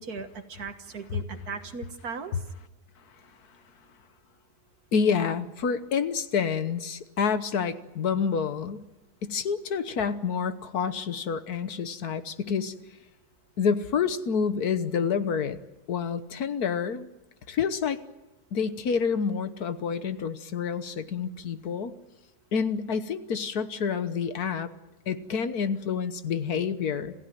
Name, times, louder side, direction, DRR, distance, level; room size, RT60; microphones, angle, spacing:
voice 1, 0.0-2.3, right 5 dB, 65° right, 8 dB, 1.9 m, -38 dB
voice 2, 4.9-8.8 9.2-12.7 13.6-15.6 15.9-17.1 17.5-18.0 18.5-21.9 22.5-24.7 25.1-27.1, left 6 dB, 65° left, 11 dB, 1.6 m, -28 dB
27.5 x 15.5 x 9.2 m, 1.0 s
omnidirectional pair, 1.8 m